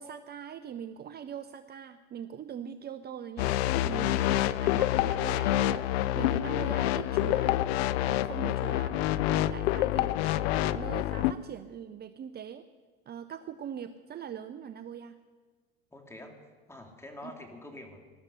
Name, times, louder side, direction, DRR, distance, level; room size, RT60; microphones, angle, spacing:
voice 1, 0.0-3.6 3.8-7.5 8.1-10.1 10.5-12.6 13.1-15.2 17.2-17.3, right 8 dB, 30° right, 11 dB, 0.7 m, -42 dB
sound 1, 3.4-11.3, left 14 dB, 70° left, 0.6 m, -27 dB
voice 2, 15.9-16.4 16.7-18.0, left 1 dB, 10° left, 2 dB, 3.0 m, -46 dB
19.5 x 13.0 x 5.7 m, 1.4 s
hypercardioid pair, 85°, 32 cm